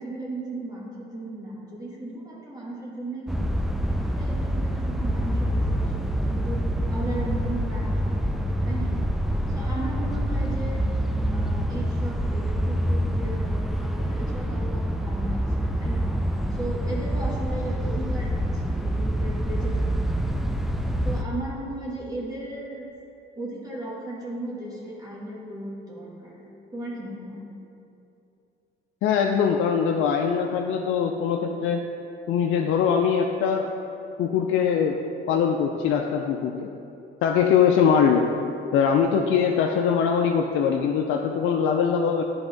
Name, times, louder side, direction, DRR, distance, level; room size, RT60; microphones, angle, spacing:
voice 1, 0.0-3.6 4.0-6.6 6.9-9.0 9.5-10.8 11.3-16.0 16.5-20.1 21.0-22.9 23.3-27.4, right 1 dB, 20° right, -6 dB, 1.3 m, -36 dB
sound 1, 3.3-21.2, equal, ahead, 0.4 m, -26 dB
voice 2, 29.0-31.8 32.3-33.7 34.2-35.0 35.3-36.7 37.2-38.3 38.7-42.2, left 7 dB, 85° left, 2 dB, 0.4 m, -22 dB
10.0 x 3.5 x 3.9 m, 2.8 s
cardioid pair, 90°, 20 cm